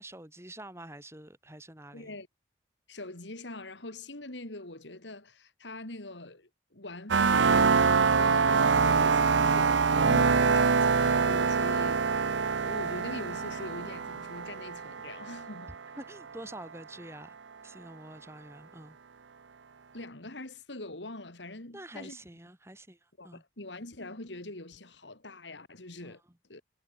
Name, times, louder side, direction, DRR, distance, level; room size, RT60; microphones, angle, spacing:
voice 1, 0.0-2.2 16.0-17.4 17.6-19.0 21.7-23.4 26.0-26.1, right 1 dB, 15° right, 7.0 m, -47 dB
voice 2, 1.9-2.3 2.9-16.0 19.9-22.2 23.2-26.2 26.5-26.6, left 2 dB, 80° left, 3.3 m, -43 dB
sound 1, 7.1-15.7, right 5 dB, 90° right, 0.7 m, -25 dB
head